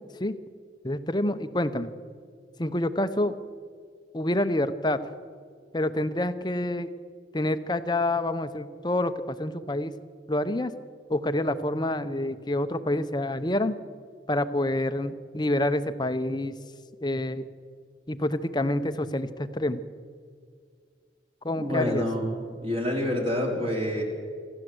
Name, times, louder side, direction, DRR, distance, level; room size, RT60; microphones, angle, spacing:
voice 1, 0.8-1.9 2.6-3.4 4.1-5.0 5.7-6.9 7.3-9.9 10.3-10.7 11.1-13.7 14.3-16.6 17.0-17.5 18.1-19.8 21.4-22.0, left 1 dB, 25° left, 11 dB, 0.9 m, -27 dB
voice 2, 21.5-24.0, left 1 dB, 35° right, 0 dB, 4.4 m, -28 dB
27.0 x 12.5 x 7.9 m, 2.1 s
head